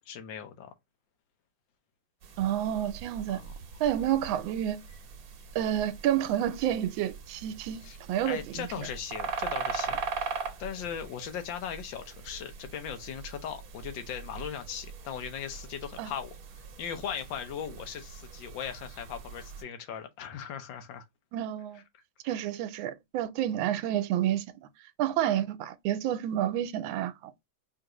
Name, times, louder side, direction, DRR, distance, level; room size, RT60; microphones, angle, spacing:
voice 1, 0.1-0.7 3.3-3.5 7.8-8.0 8.2-10.3 10.6-16.4 16.8-21.0, left 8 dB, 75° left, 1.5 m, -38 dB
sound 1, 2.2-19.6, right 5 dB, 60° right, 1.1 m, -41 dB
voice 2, 2.4-3.4 3.8-4.8 5.5-7.8 8.1-8.7 16.0-16.1 21.3-21.8 22.2-24.5 25.0-27.3, right 11 dB, 80° right, 1.4 m, -29 dB
5.0 x 2.6 x 2.9 m
omnidirectional pair, 2.1 m